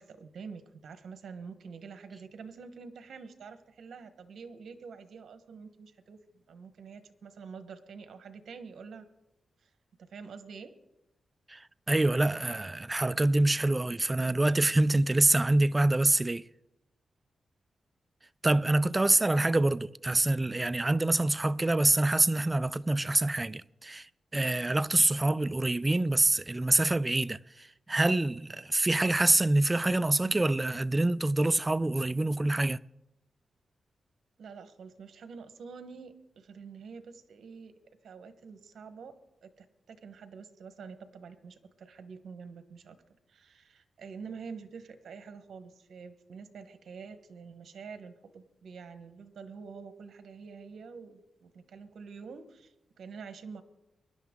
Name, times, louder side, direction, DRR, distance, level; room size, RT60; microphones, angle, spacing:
voice 1, 0.0-9.1 9.6-9.7 10.0-10.7 34.4-37.7 38.0-39.1 39.4-43.0 43.3-53.6, right 5 dB, 75° right, 1.2 m, -47 dB
voice 2, 11.5-16.5 18.4-24.1 24.3-32.8, right 2 dB, 20° right, 0.4 m, -26 dB
23.5 x 11.0 x 3.7 m
cardioid pair, 75°, 0 cm